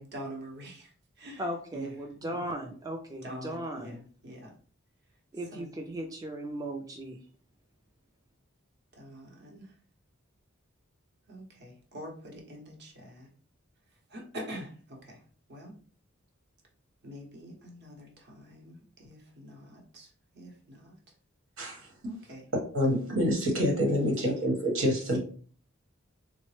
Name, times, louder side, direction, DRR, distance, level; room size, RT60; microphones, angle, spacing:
voice 1, 0.0-2.4 3.2-4.6 5.5-5.7 8.9-9.8 11.3-13.3 14.1-15.2 15.5-15.8 17.0-20.9 22.0-22.5 24.0-24.1, equal, 55° right, 1 dB, 0.8 m, -45 dB
voice 2, 1.4-4.0 5.3-7.2, right 1 dB, 20° right, 3 dB, 0.3 m, -37 dB
voice 3, 21.6-21.9 22.7-25.2, equal, 85° right, 0 dB, 1.3 m, -27 dB
3.8 x 2.0 x 3.1 m, 0.43 s
head